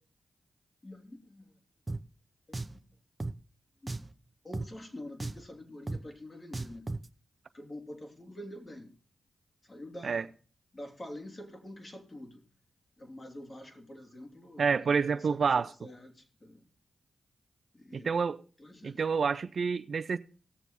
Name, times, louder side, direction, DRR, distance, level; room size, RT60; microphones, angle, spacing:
voice 1, 0.8-1.5 1.9-2.0 2.7-2.8 3.8-4.0 4.4-6.9 7.5-8.9 9.6-10.3 10.7-12.4 13.0-16.6 17.7-18.1 18.6-19.2, left 1 dB, 35° left, 2.9 m, -46 dB
Drum, 1.9-2.0 2.5-2.8 3.2-3.3 3.9-4.1 4.5-4.7 5.2-5.5 5.9-6.0 6.5-7.1, right 2 dB, 30° right, 0.8 m, -36 dB
voice 2, 14.6-15.7 17.9-18.4 18.8-20.2, right 5 dB, 65° right, 0.5 m, -28 dB
17.5 x 7.1 x 4.1 m
cardioid pair, 45°, 0 cm